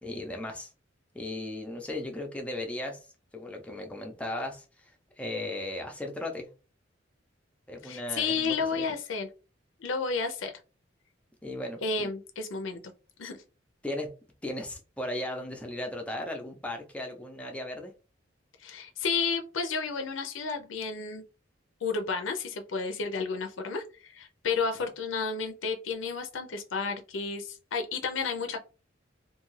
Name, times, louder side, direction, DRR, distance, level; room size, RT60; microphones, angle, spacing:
voice 1, 0.0-0.7 1.1-3.1 3.3-4.9 5.2-6.5 7.7-8.9 11.4-12.1 13.8-14.2 14.4-17.9, left 1 dB, 5° left, 0.5 m, -36 dB
voice 2, 7.8-9.3 9.8-10.5 11.8-12.8 13.2-13.4 18.6-21.2 21.8-28.6, left 4 dB, 90° left, 0.5 m, -32 dB
2.6 x 2.3 x 3.1 m
head